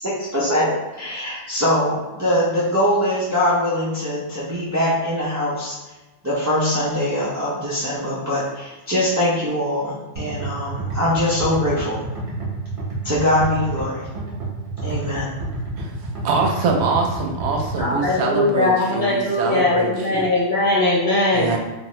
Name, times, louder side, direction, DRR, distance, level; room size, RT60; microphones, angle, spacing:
voice 1, 0.0-5.8 6.2-12.1 13.0-14.1 14.8-15.3, left 1 dB, 25° right, -9 dB, 0.4 m, -22 dB
sound 1, 10.2-18.1, right 2 dB, 50° right, 1.0 m, -29 dB
voice 2, 16.2-20.3 21.3-21.6, right 4 dB, 75° right, 1 dB, 0.8 m, -23 dB
voice 3, 17.8-21.5, left 2 dB, 50° left, -6 dB, 1.0 m, -20 dB
2.8 x 2.3 x 3.0 m, 1.1 s
omnidirectional pair, 1.1 m